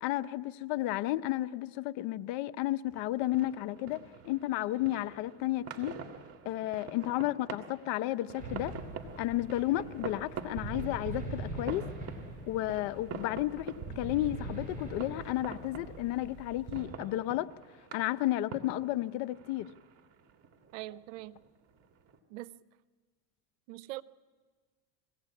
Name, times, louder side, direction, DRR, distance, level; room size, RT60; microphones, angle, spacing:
voice 1, 0.0-5.9 6.4-8.7 9.2-11.9 12.5-17.5 17.9-19.7, left 15 dB, 70° left, 14 dB, 0.8 m, -32 dB
sound 1, 2.9-22.2, right 5 dB, 40° right, 2.0 m, -47 dB
sound 2, 8.4-16.8, right 3 dB, 20° right, 7.0 m, -42 dB
voice 2, 20.7-21.4 22.3-22.6 23.7-24.0, right 17 dB, 85° right, 18 dB, 0.7 m, -42 dB
21.5 x 16.5 x 8.4 m, 1.5 s
supercardioid pair, 105°, 36 cm